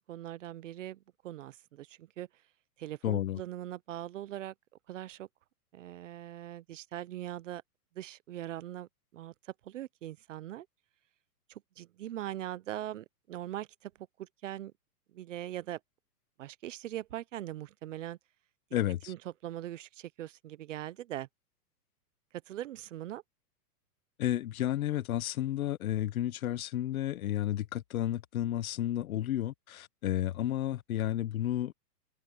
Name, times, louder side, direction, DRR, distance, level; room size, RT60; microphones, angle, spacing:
voice 1, 0.1-2.3 2.8-4.5 4.9-5.3 5.7-7.6 8.0-10.7 11.5-13.9 14.2-14.7 15.1-15.8 16.4-18.2 19.1-21.3 22.5-23.2, right 13 dB, 50° right, 0.7 m, -41 dB
voice 2, 3.0-3.4 18.7-19.1 24.2-31.7, left 12 dB, 60° left, 1.0 m, -32 dB
hypercardioid pair, 165°, 49 cm